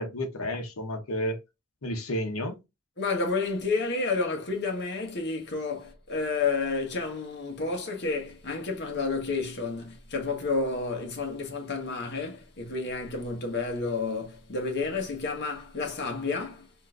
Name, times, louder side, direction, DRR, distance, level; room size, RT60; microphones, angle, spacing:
voice 1, 0.0-1.4 1.8-2.6, equal, 80° left, 0.9 m, -31 dB
voice 2, 3.0-16.7, left 4 dB, 55° left, 1.1 m, -30 dB
3.8 x 2.6 x 2.4 m
head